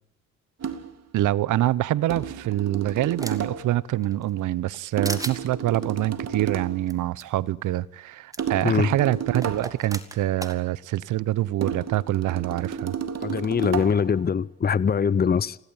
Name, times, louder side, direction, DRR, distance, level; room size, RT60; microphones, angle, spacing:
sound 1, 0.6-1.0 2.1-3.8 5.0-6.8 8.4-9.9 11.6-14.1, right 7 dB, 60° right, 2.4 m, -32 dB
voice 1, 1.1-12.9, right 14 dB, 80° right, 0.9 m, -25 dB
sound 2, 2.2-3.6 4.0-4.8 5.0-5.4 6.9-7.0 7.2-7.3 8.3-8.4 9.4-10.6, right 1 dB, 10° right, 2.9 m, -36 dB
voice 2, 13.2-15.6, left 6 dB, 30° left, 0.8 m, -22 dB
27.0 x 17.0 x 8.9 m
cardioid pair, 65°, 30 cm